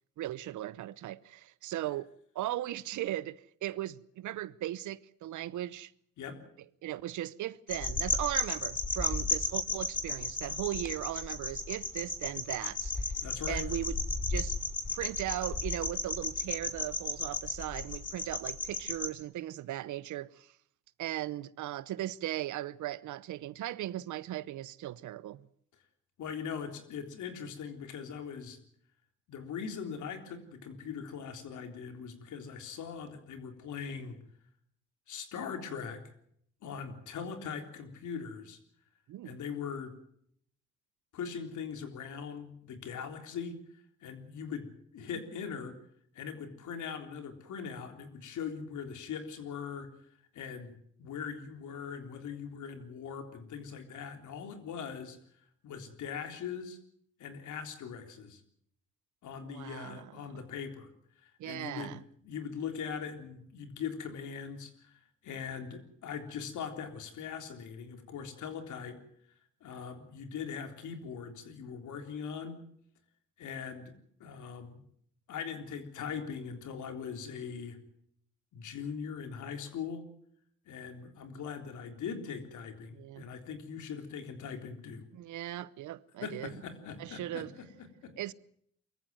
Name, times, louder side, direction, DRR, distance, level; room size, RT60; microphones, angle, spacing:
voice 1, 0.2-2.1 2.3-5.9 6.8-13.0 13.5-14.0 14.3-14.6 14.9-20.5 21.0-25.5 39.1-39.4 59.4-60.3 61.4-62.0 82.9-83.3 85.1-86.5 87.0-87.5 88.2-88.3, right 14 dB, 75° right, 0.8 m, -38 dB
sound 1, 7.7-19.1, left 3 dB, 25° left, 3.1 m, -34 dB
voice 2, 13.2-13.6 26.2-28.6 29.3-34.2 35.1-36.0 36.6-38.6 39.2-39.9 41.1-44.7 44.9-45.7 46.1-49.9 50.3-56.8 57.2-58.4 59.2-60.9 61.2-69.0 69.6-72.6 73.4-73.9 74.2-74.8 75.3-77.8 78.5-80.1 80.7-85.1 86.2-87.7 88.0-88.1, left 6 dB, 75° left, 3.6 m, -41 dB
23.5 x 14.5 x 9.3 m
cardioid pair, 90°, 30 cm